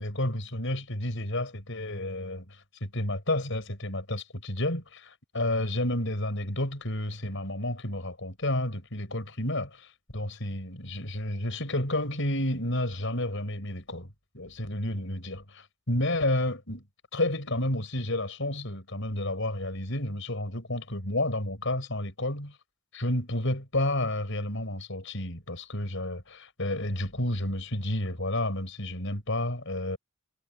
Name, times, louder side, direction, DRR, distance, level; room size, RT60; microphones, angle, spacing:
voice 1, 0.0-16.8 17.1-22.6 22.9-30.0, left 1 dB, 60° left, 7.0 m, -31 dB
head